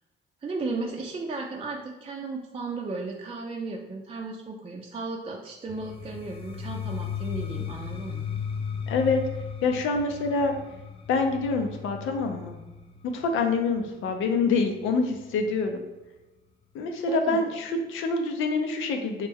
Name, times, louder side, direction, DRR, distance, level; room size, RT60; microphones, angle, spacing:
voice 1, 0.4-8.3 17.1-17.4, right 3 dB, 30° right, 0 dB, 0.5 m, -35 dB
sound 1, 5.7-15.5, left 7 dB, 30° left, 0.5 m, -36 dB
voice 2, 8.9-9.2 9.6-10.6 11.1-12.6 13.0-15.8 16.7-19.3, left 4 dB, 85° left, 4 dB, 0.6 m, -26 dB
3.3 x 3.2 x 3.5 m, 1.1 s
cardioid pair, 90°, 20 cm